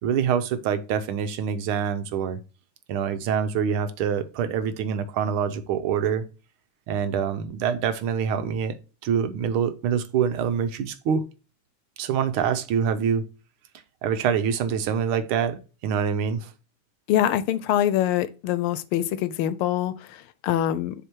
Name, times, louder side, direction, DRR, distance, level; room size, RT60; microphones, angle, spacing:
voice 1, 0.0-2.4 2.9-6.2 6.9-8.8 9.0-11.3 12.0-13.2 14.0-16.5, right 7 dB, 80° right, 1.6 m, -25 dB
voice 2, 17.1-20.9, left 11 dB, 85° left, 1.5 m, -24 dB
7.0 x 3.6 x 4.5 m
omnidirectional pair, 2.4 m